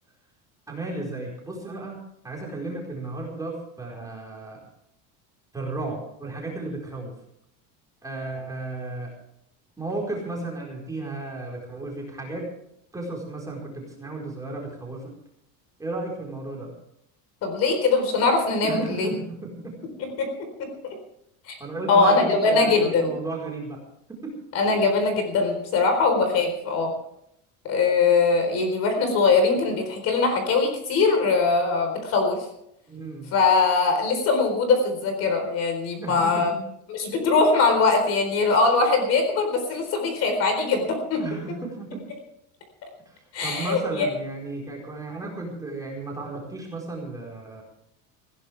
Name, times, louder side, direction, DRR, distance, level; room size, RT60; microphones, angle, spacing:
voice 1, 0.7-4.6 5.5-7.1 8.0-9.1 9.8-12.5 12.9-15.0 15.8-16.7 18.6-19.7 21.6-23.8 24.1-24.4 32.9-33.3 36.0-36.6 41.2-42.1 43.1-47.6, right 2 dB, 10° right, -1 dB, 4.6 m, -34 dB
voice 2, 17.4-19.1 20.0-20.9 21.5-21.6 21.9-23.1 24.5-26.9 27.6-32.4 33.3-36.5 36.9-41.2 43.3-44.1, left 4 dB, 40° left, 5 dB, 4.2 m, -22 dB
20.0 x 16.5 x 3.5 m, 0.75 s
cardioid pair, 175°, 39 cm